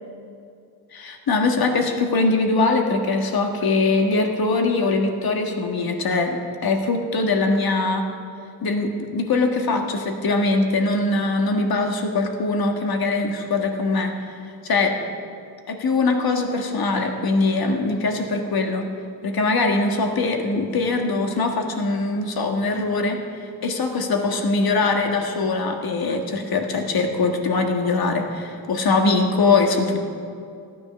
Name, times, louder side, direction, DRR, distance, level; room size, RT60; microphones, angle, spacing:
voice 1, 0.9-8.0 8.6-14.1 14.6-14.9 15.7-18.9 19.2-23.2 23.6-30.0, left 3 dB, 65° left, 4 dB, 1.6 m, -22 dB
15.0 x 9.5 x 6.7 m, 2.5 s
wide cardioid pair, 120°, 39 cm